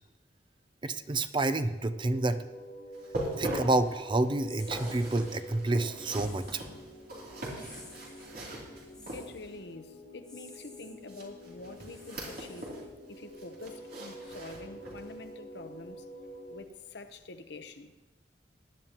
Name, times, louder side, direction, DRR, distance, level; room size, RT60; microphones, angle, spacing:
voice 1, 0.8-2.4 3.4-6.6, right 2 dB, 25° right, 10 dB, 0.5 m, -29 dB
sound 1, 1.6-16.6, equal, 40° left, 2.7 m, -48 dB
sound 2, 2.9-9.7 11.1-12.9 13.2-15.1 15.6-15.7 16.2-16.3, right 1 dB, 55° right, 3.2 m, -41 dB
sound 3, 4.4-5.3 6.0-6.7 7.5-8.3 8.9-9.4 10.2-10.9 11.8-13.0, left 2 dB, 5° left, 3.5 m, -53 dB
voice 2, 9.1-12.7 13.1-16.1 16.5-17.9, left 2 dB, 70° left, 9 dB, 0.9 m, -46 dB
19.5 x 10.5 x 3.0 m, 1.2 s
head